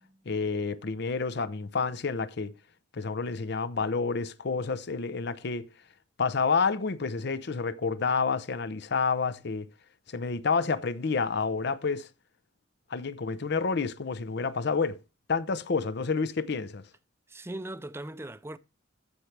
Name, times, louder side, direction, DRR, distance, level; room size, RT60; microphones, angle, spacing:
voice 1, 0.3-2.5 2.9-5.7 6.2-9.7 10.1-12.1 12.9-15.0 15.3-16.8, left 4 dB, 60° left, 0.7 m, -29 dB
voice 2, 17.3-18.6, right 1 dB, 15° right, 0.5 m, -39 dB
14.5 x 5.9 x 3.3 m
head